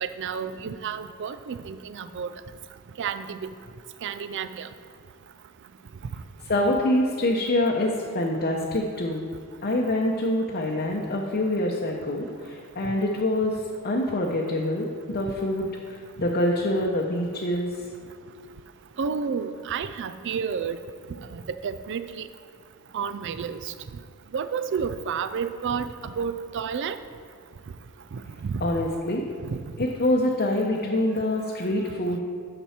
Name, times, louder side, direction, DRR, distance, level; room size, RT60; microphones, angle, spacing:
voice 1, 0.0-2.3 3.0-3.5 4.0-4.7 19.0-20.8 21.3-22.3 22.9-23.7 24.3-27.0 28.1-28.6 29.4-29.6, right 6 dB, 55° right, 12 dB, 0.4 m, -31 dB
voice 2, 6.5-9.3 9.6-13.6 13.8-17.7 28.6-29.2 29.8-32.2, left 1 dB, 45° left, -2 dB, 0.8 m, -25 dB
10.0 x 6.0 x 4.3 m, 2.3 s
head